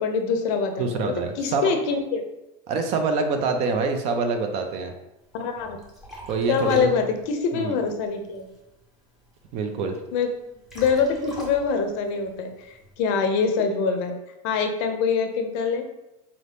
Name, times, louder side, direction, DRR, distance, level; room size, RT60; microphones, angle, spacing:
voice 1, 0.0-2.2 5.3-5.8 6.5-8.5 10.1-10.3 10.7-12.7 13.0-14.1 14.4-16.0, left 5 dB, 50° left, 6 dB, 0.5 m, -24 dB
voice 2, 0.8-1.7 2.7-4.9 6.3-7.0 7.5-7.8 9.5-10.0, right 4 dB, 35° right, 6 dB, 0.3 m, -25 dB
Liquid, 5.2-12.9, right 1 dB, ahead, 0.7 m, -46 dB
4.0 x 2.7 x 3.3 m, 0.93 s
supercardioid pair, 165°, 19 cm